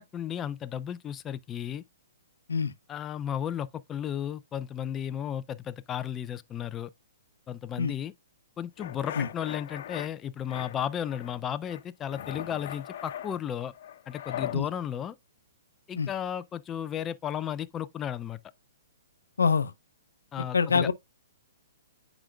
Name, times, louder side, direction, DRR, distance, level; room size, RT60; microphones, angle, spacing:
voice 1, 0.0-1.8 2.9-6.9 7.5-8.1 8.6-13.7 14.1-15.2 15.9-18.4 20.3-20.9, left 9 dB, 20° left, 0.3 m, -34 dB
sound 1, 8.8-10.1 10.5-11.4 11.7-14.6, left 10 dB, 55° left, 0.9 m, -40 dB
voice 2, 19.4-19.7 20.5-20.9, left 5 dB, 90° left, 0.6 m, -25 dB
8.9 x 5.0 x 2.3 m
hypercardioid pair, 140°, 0 cm